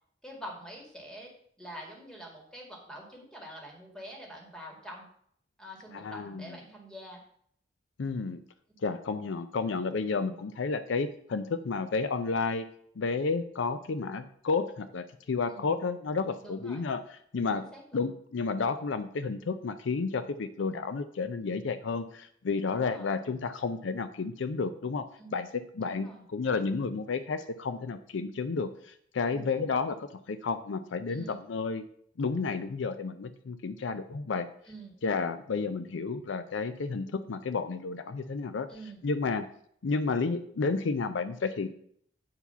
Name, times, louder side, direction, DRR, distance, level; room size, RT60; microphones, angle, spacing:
voice 1, 0.2-1.3 1.6-5.1 5.6-7.2 8.7-8.9 15.5-15.8 16.4-16.9 17.5-18.1 22.7-23.2 25.2-25.4 25.8-26.2 29.3-29.5 31.1-31.4 34.7-34.9 38.7-39.0, right 1 dB, 5° left, -1 dB, 2.0 m, -46 dB
voice 2, 5.9-6.6 8.0-8.4 8.8-12.7 13.0-17.7 17.9-31.8 32.2-34.5 35.0-38.7 39.0-39.5 39.8-41.7, left 4 dB, 70° left, 11 dB, 0.5 m, -31 dB
8.4 x 4.7 x 5.6 m, 0.66 s
head